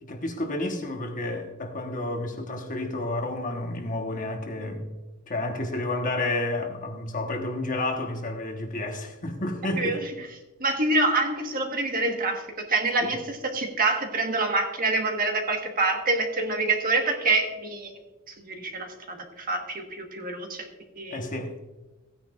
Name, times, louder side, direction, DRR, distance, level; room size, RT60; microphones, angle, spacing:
voice 1, 0.0-4.9 5.3-10.0 13.0-13.1 21.1-21.5, left 2 dB, 40° left, 1.2 m, -30 dB
voice 2, 9.8-10.3 10.6-12.4 12.7-17.9 18.3-20.7 21.0-21.2, right 3 dB, 40° right, 1.4 m, -26 dB
15.5 x 9.4 x 2.4 m
head